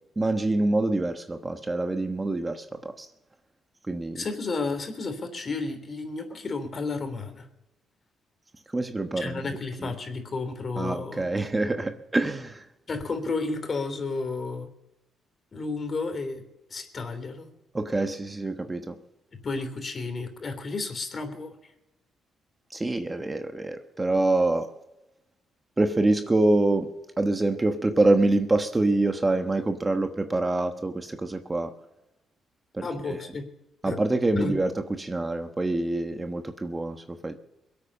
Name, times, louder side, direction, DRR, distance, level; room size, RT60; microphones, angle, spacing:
voice 1, 0.2-3.1 3.9-4.3 8.7-9.5 9.8-9.9 10.8-12.7 17.7-19.0 22.7-24.7 25.8-31.7 32.7-33.2 33.8-37.4, right 2 dB, 20° right, 1.2 m, -26 dB
voice 2, 4.1-7.5 9.2-11.2 12.9-14.7 15.5-16.4 16.7-17.5 19.3-21.5 32.8-33.4 33.8-34.0 34.3-34.6, left 3 dB, 40° left, 3.3 m, -32 dB
22.5 x 8.6 x 6.8 m
cardioid pair, 90°, 0 cm